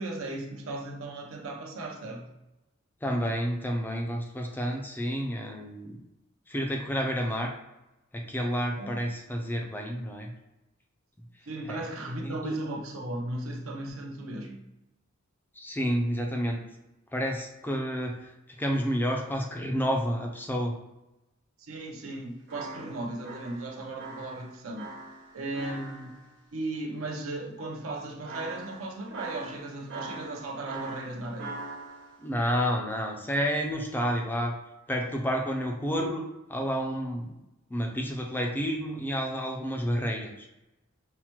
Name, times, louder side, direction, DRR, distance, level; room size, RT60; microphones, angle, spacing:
voice 1, 0.0-2.3 8.8-9.0 11.5-14.6 21.6-24.9 25.3-26.2 26.5-31.6, right 2 dB, 75° right, 0.7 m, -36 dB
voice 2, 3.0-6.0 6.5-7.5 8.1-10.3 11.7-11.8 12.2-12.5 15.6-16.6 17.1-18.2 18.6-20.8 32.2-34.5 34.9-36.2 36.5-37.4 37.7-40.5, equal, 10° left, 0.4 m, -30 dB
sound 1, 22.5-26.3 28.3-32.2, right 3 dB, 55° right, 1.3 m, -42 dB
5.7 x 2.1 x 2.9 m
head